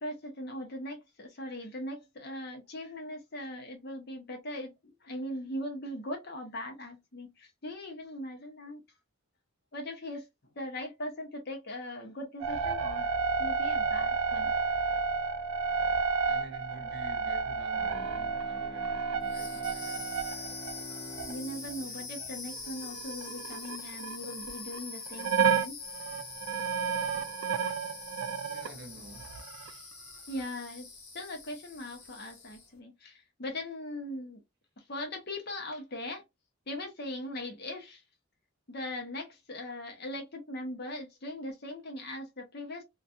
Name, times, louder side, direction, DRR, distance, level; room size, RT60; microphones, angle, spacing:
voice 1, 0.0-8.8 9.7-10.3 10.6-13.1 13.4-14.5 21.3-25.8 30.3-30.9 31.1-34.4 34.9-36.2 36.7-38.0 38.7-42.8, left 1 dB, 50° left, 0.8 m, -40 dB
sound 1, 12.4-22.3 22.5-24.8 25.1-28.7 29.2-29.7, right 5 dB, 80° right, 0.3 m, -31 dB
voice 2, 16.3-20.1 28.4-29.4, right 2 dB, 50° right, 0.7 m, -49 dB
Bowed string instrument, 17.8-23.4, left 2 dB, 20° left, 0.3 m, -48 dB
sound 2, 19.2-32.7, left 4 dB, 85° left, 1.1 m, -44 dB
2.6 x 2.3 x 2.4 m
head